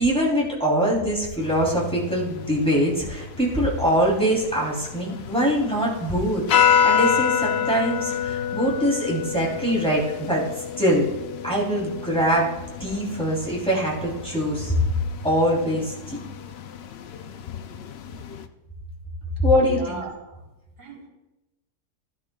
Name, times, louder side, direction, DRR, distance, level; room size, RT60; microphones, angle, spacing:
voice 1, 0.0-10.4 10.8-11.1 11.4-12.5 12.8-14.8 15.2-16.2 19.4-20.0, equal, 5° left, -5 dB, 3.1 m, -23 dB
sound 1, 1.4-18.5, left 7 dB, 80° left, 0.5 m, -28 dB
voice 2, 19.6-20.4 20.8-21.1, right 5 dB, 90° right, 0 dB, 2.2 m, -37 dB
14.5 x 10.5 x 2.3 m, 0.98 s
omnidirectional pair, 1.7 m